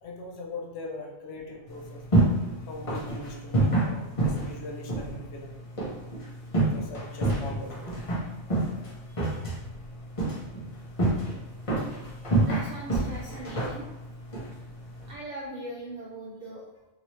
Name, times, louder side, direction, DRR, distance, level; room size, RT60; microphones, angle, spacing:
voice 1, 0.0-2.0 2.7-5.6 6.5-7.8 12.3-12.5, left 2 dB, 70° left, 0 dB, 0.9 m, -41 dB
sound 1, 1.7-15.1, right 2 dB, 30° left, 0.8 m, -29 dB
voice 2, 12.4-13.9 15.1-16.7, right 1 dB, 55° right, -3 dB, 0.5 m, -40 dB
2.9 x 2.8 x 2.9 m, 1.0 s
omnidirectional pair, 1.2 m